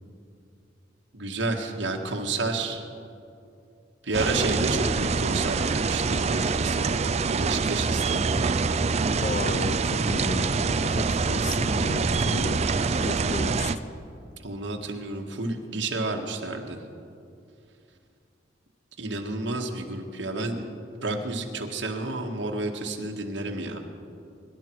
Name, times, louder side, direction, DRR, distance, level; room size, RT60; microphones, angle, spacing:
voice 1, 1.1-2.8 4.0-6.9 7.3-8.5 14.4-16.8 19.0-20.6 21.0-23.8, right 2 dB, 80° right, 2 dB, 1.7 m, -30 dB
sound 1, 4.1-13.8, right 4 dB, 35° right, 0.4 m, -25 dB
voice 2, 9.2-12.6 13.0-13.7, left 3 dB, 40° left, 10 dB, 0.8 m, -33 dB
24.5 x 12.0 x 4.6 m, 2.5 s
head